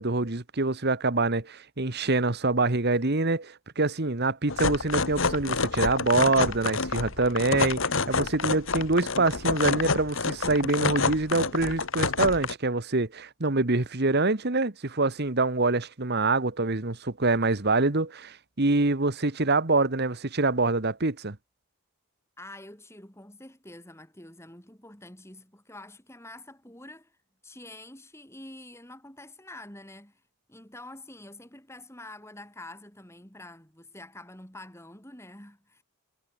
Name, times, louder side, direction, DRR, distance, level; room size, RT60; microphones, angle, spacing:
voice 1, 0.0-7.8 8.1-21.4, right 3 dB, 45° right, 1.4 m, -25 dB
sound 1, 4.5-12.5, left 4 dB, 60° left, 1.8 m, -28 dB
voice 2, 22.4-27.2 27.4-30.2 30.5-35.8, left 1 dB, 10° left, 5.7 m, -47 dB
head